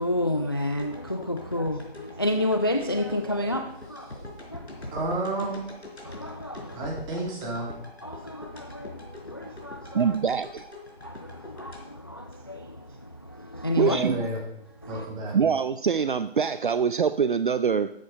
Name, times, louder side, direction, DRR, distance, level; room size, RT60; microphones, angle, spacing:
voice 1, 0.0-5.0 6.0-6.9 8.0-10.2 11.0-14.0 14.8-15.0, left 1 dB, 25° left, 0.3 m, -30 dB
sound 1, 0.8-13.0 13.4-13.5, left 2 dB, 85° left, 4.5 m, -44 dB
voice 2, 4.9-5.6 6.7-7.7 13.9-14.4 14.9-15.4, right 2 dB, 15° right, 2.3 m, -30 dB
voice 3, 9.9-10.6 13.8-14.3 15.3-17.9, right 6 dB, 50° right, 0.5 m, -24 dB
13.0 x 8.3 x 5.3 m
figure-of-eight pair, 145°, 32 cm